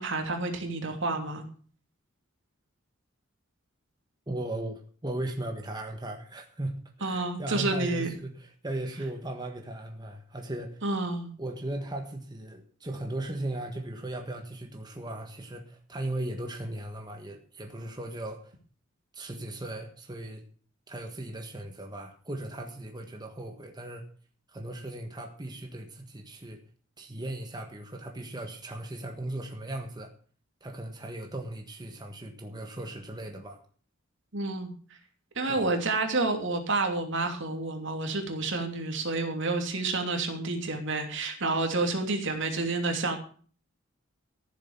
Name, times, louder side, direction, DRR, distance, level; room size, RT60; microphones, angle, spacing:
voice 1, 0.0-1.4 7.0-8.1 10.8-11.3 34.3-34.7 35.3-43.2, right 3 dB, 65° right, 4 dB, 2.9 m, -29 dB
voice 2, 4.3-10.8 11.4-18.5 19.1-20.4 20.9-24.0 24.5-26.6 27.0-30.1 30.6-33.6 35.5-35.7, right 1 dB, 20° right, 3 dB, 1.5 m, -37 dB
14.5 x 7.5 x 7.1 m, 0.43 s
head